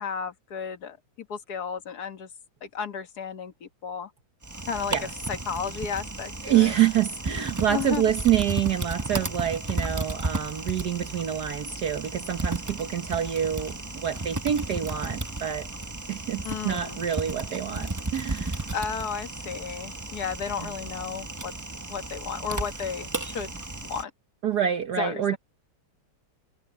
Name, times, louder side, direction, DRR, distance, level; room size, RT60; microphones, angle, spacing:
voice 1, 0.0-2.3 2.6-4.1 4.7-4.9 5.3-6.7 7.7-8.0 16.4-17.0 18.7-21.5 21.9-23.6 23.8-24.1 25.0-25.4, left 6 dB, 60° left, 1.8 m, -33 dB
Typing, 4.4-24.0, right 2 dB, 25° right, 0.4 m, -34 dB
voice 2, 6.4-15.7 16.1-18.7 20.6-20.7 24.4-25.4, right 10 dB, 65° right, 1.6 m, -27 dB
omnidirectional pair, 2.0 m